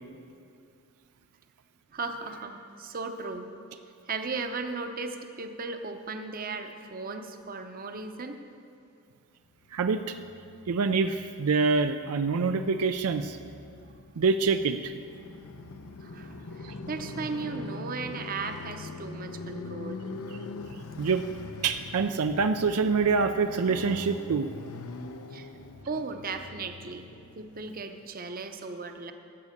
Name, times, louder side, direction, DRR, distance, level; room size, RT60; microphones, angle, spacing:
voice 1, 1.9-3.5 4.0-8.4 16.0-20.0 25.3-25.5 25.9-29.1, right 4 dB, 40° right, 6 dB, 0.7 m, -36 dB
voice 2, 9.7-10.2 10.7-13.4 14.2-14.9 16.6-16.7 21.0-21.2 21.6-24.5, right 4 dB, 80° right, 8 dB, 0.4 m, -26 dB
Motorcycle, 9.8-28.0, left 3 dB, 80° left, 0.7 m, -43 dB
13.5 x 8.4 x 6.5 m, 2.5 s
head